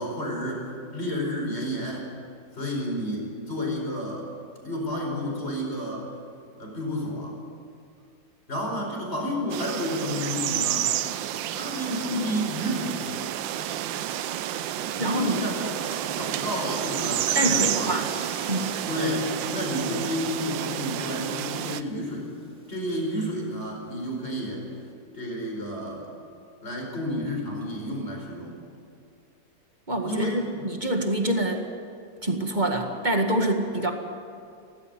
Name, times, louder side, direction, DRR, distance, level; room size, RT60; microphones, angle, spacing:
voice 1, 0.0-2.1 2.5-4.3 4.6-6.1 6.6-7.4 8.5-10.9 11.5-13.1 15.0-18.0 18.9-22.3 22.7-24.6 25.1-26.1 26.6-28.6 30.0-30.5, equal, 35° left, 0 dB, 5.0 m, -31 dB
sound 1, 9.5-21.8, right 11 dB, 80° right, 1.4 m, -30 dB
voice 2, 15.0-15.3 17.4-18.1 18.5-18.7 29.9-31.7 32.2-33.9, right 1 dB, 25° right, 3 dB, 1.9 m, -26 dB
sound 2, 16.3-24.9, equal, 5° right, 2.3 m, -49 dB
17.5 x 16.5 x 9.6 m, 2.5 s
omnidirectional pair, 2.0 m